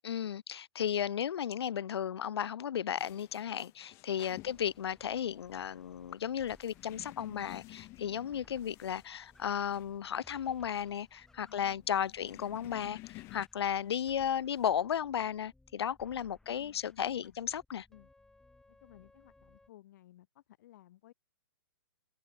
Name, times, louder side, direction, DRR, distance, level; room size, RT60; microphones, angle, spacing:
voice 1, 0.0-17.9, left 9 dB, 75° left, 0.6 m, -34 dB
sound 1, 3.0-13.5, left 22 dB, 20° left, 0.4 m, -53 dB
voice 2, 4.3-4.6 11.5-12.3 16.4-17.4 17.9-18.1 18.7-21.1, left 14 dB, 45° left, 1.2 m, -59 dB
sound 2, 4.4-19.7, left 2 dB, 5° left, 5.5 m, -64 dB
hypercardioid pair, 155°, 13 cm